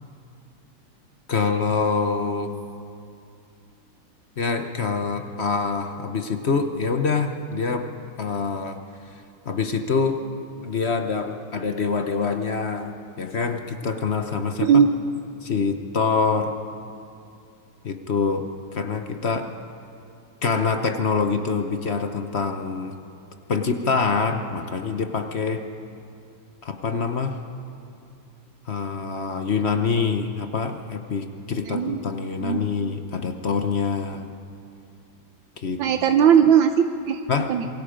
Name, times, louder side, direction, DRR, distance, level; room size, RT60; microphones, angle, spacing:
voice 1, 1.3-2.5 4.4-7.9 8.2-8.8 9.4-10.2 10.6-14.8 15.4-16.5 17.8-18.4 18.7-19.5 20.4-23.0 23.5-25.6 26.6-27.4 28.7-34.3 35.6-35.8 37.3-37.5, left 5 dB, 45° left, 6 dB, 1.0 m, -25 dB
voice 2, 14.6-14.9 31.7-32.0 32.4-32.9 35.8-37.7, right 8 dB, 80° right, 7 dB, 1.5 m, -19 dB
27.0 x 21.5 x 5.1 m, 2.5 s
omnidirectional pair, 2.1 m